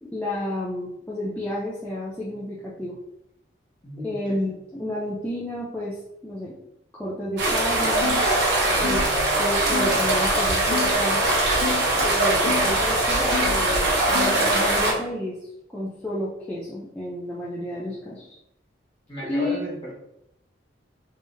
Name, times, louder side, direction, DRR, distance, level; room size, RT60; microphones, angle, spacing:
voice 1, 0.0-2.9 4.0-6.5 6.9-8.2 8.8-9.1 9.4-11.2 12.0-18.4 19.2-19.6, left 1 dB, 10° left, -8 dB, 0.5 m, -31 dB
voice 2, 3.8-4.4 19.1-19.9, equal, 25° left, -6 dB, 1.2 m, -34 dB
sound 1, 7.4-14.9, right 1 dB, 65° right, 0.9 m, -21 dB
sound 2, 8.0-8.3 8.8-9.1 9.7-9.9 10.7-11.0 11.6-11.9 12.4-12.7 13.3-13.6 14.1-14.4, left 6 dB, 55° left, 0.5 m, -30 dB
3.6 x 3.4 x 2.6 m, 0.82 s
head